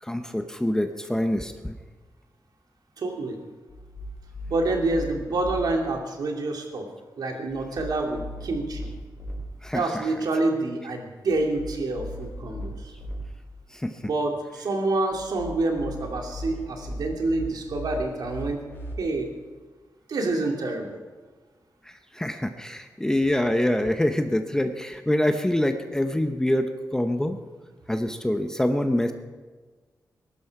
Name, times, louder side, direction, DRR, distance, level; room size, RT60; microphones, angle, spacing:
voice 1, 0.0-1.8 9.6-10.1 13.7-14.1 21.8-27.4 27.9-29.1, left 1 dB, 10° left, 7 dB, 0.8 m, -25 dB
voice 2, 3.0-3.4 4.5-6.9 7.2-8.9 9.7-12.9 14.0-18.6 19.0-19.3 20.1-21.0, right 2 dB, 70° right, 2 dB, 2.6 m, -27 dB
sound 1, 3.7-5.6 7.5-9.4 11.3-13.2 15.1-18.9, equal, 30° left, 4.8 m, -38 dB
21.5 x 12.0 x 4.8 m, 1.4 s
wide cardioid pair, 115°, 7 cm